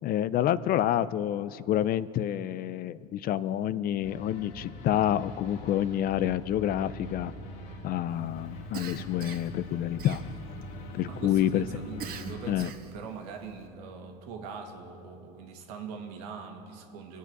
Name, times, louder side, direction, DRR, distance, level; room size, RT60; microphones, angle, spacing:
voice 1, 0.0-7.3 7.8-10.2 10.9-11.6 12.5-12.7, left 11 dB, 50° left, 17 dB, 0.5 m, -28 dB
sound 1, 4.0-12.5, left 2 dB, 75° left, 2.3 m, -43 dB
Cough, 8.7-9.6 10.0-10.6 12.0-13.0, right 7 dB, 50° right, 1.4 m, -41 dB
voice 2, 11.1-17.2, right 5 dB, 80° right, 3 dB, 1.9 m, -42 dB
24.0 x 8.4 x 6.0 m, 2.8 s
supercardioid pair, 105°, 20 cm